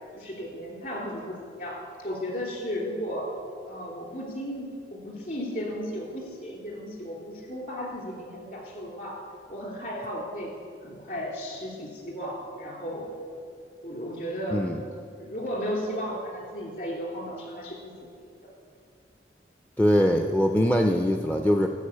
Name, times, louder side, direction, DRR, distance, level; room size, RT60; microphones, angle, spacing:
voice 1, 0.1-3.3 3.6-9.2 9.5-10.5 10.8-13.1 13.8-14.7 15.2-18.1 18.4-18.5, equal, 50° left, -2 dB, 2.9 m, -35 dB
voice 2, 19.8-21.7, equal, 10° left, 4 dB, 0.4 m, -22 dB
13.0 x 5.0 x 8.5 m, 2.3 s
head